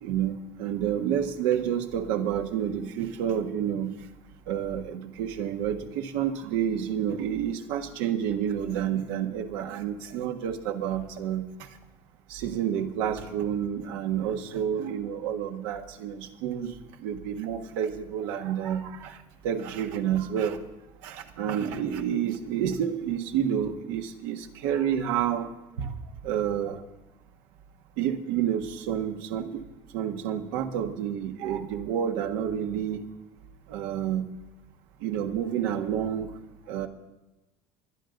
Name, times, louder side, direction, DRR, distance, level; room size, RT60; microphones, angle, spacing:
voice 1, 0.0-3.9 4.5-11.7 12.3-20.6 21.0-25.5 25.8-25.9 26.2-26.8 28.0-29.6 29.9-33.0 33.7-34.2 35.0-36.3 36.7-36.9, right 9 dB, 85° right, 4 dB, 1.5 m, -29 dB
23.0 x 9.7 x 3.9 m, 1.0 s
cardioid pair, 145°, 13 cm